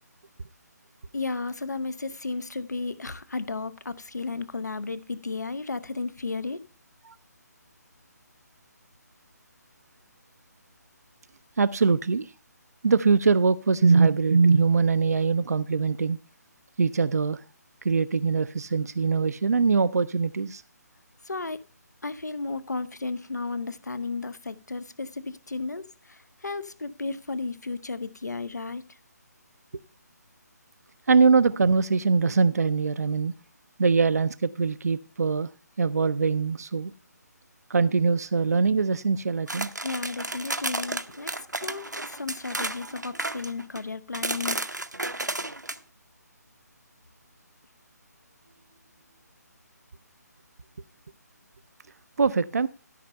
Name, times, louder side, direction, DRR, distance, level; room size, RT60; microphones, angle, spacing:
voice 1, 1.1-6.6 21.2-21.6 22.0-29.0 39.8-41.3 41.6-44.6, left 3 dB, 75° left, 0.8 m, -33 dB
voice 2, 11.6-12.3 12.8-16.2 16.8-17.4 17.8-20.6 31.1-33.3 33.8-35.5 35.8-36.9 37.7-39.7 52.2-52.7, right 4 dB, 65° right, 0.4 m, -22 dB
sound 1, 39.5-43.8 44.1-45.8, right 2 dB, 85° right, 0.8 m, -32 dB
13.0 x 5.6 x 5.3 m
figure-of-eight pair, 145°, 9 cm